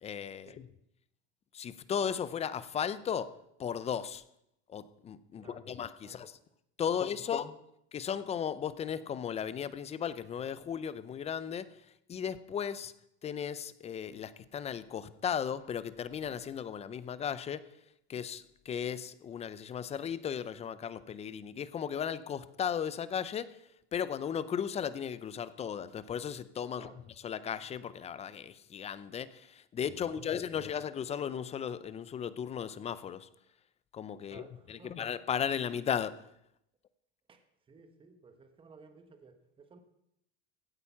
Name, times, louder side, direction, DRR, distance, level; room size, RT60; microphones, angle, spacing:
voice 1, 0.0-0.7 1.5-3.3 3.6-4.2 4.7-6.4 6.8-7.6 7.9-11.8 12.1-12.9 13.2-17.6 18.1-23.6 23.9-33.3 33.9-36.2, left 8 dB, 20° left, 0.6 m, -36 dB
voice 2, 5.3-5.8 6.0-6.5 6.9-7.6 26.7-27.1 30.0-30.6 34.2-35.0 37.3-39.8, right 4 dB, 15° right, 1.2 m, -57 dB
16.0 x 8.7 x 5.7 m
supercardioid pair, 140°, 31 cm